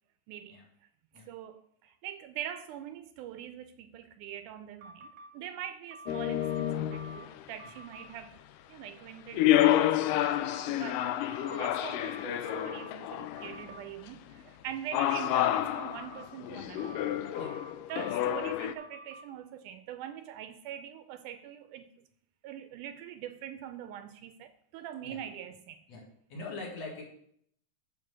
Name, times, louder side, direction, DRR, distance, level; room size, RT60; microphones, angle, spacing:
voice 1, 0.3-0.6 1.3-8.4 8.7-11.1 11.5-16.9 17.9-22.1 22.4-25.8, right 10 dB, 80° right, 2.0 m, -43 dB
sound 1, 4.8-5.3 5.9-7.3 7.6-8.1 10.1-10.7 11.3-12.9 13.4-13.8 15.8-16.3 16.8-18.3 18.8-19.2, right 2 dB, 45° right, 1.0 m, -49 dB
sound 2, 6.1-7.4 9.3-13.7 14.9-18.7, left 12 dB, 85° left, 2.2 m, -29 dB
voice 2, 26.3-27.0, left 3 dB, 55° left, 2.9 m, -42 dB
10.0 x 4.5 x 6.6 m
omnidirectional pair, 3.8 m